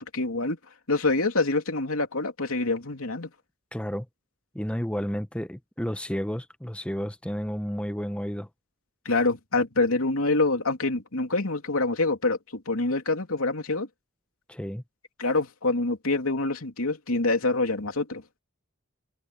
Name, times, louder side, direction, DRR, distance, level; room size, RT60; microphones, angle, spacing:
voice 1, 0.1-0.6 0.9-3.3 9.0-13.9 15.2-18.2, left 2 dB, 80° left, 3.1 m, -26 dB
voice 2, 3.7-4.1 4.5-8.5 14.5-14.8, equal, 5° left, 0.9 m, -31 dB
head